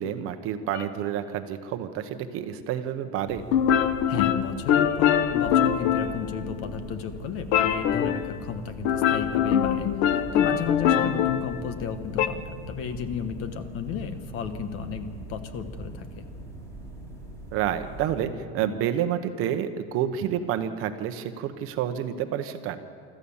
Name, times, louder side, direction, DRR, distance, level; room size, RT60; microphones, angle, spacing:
voice 1, 0.0-3.4 11.0-11.1 17.5-22.8, right 10 dB, 40° right, 8 dB, 1.0 m, -29 dB
sound 1, 0.7-0.9 3.5-6.8 7.5-8.4 8.9-12.3, left 9 dB, 75° left, 1.1 m, -23 dB
sound 2, 3.3-18.3, right 2 dB, 10° left, 2.9 m, -41 dB
voice 2, 4.1-16.3, left 7 dB, 40° left, 9 dB, 1.3 m, -33 dB
25.5 x 14.0 x 7.2 m, 2.2 s
cardioid pair, 175°, 34 cm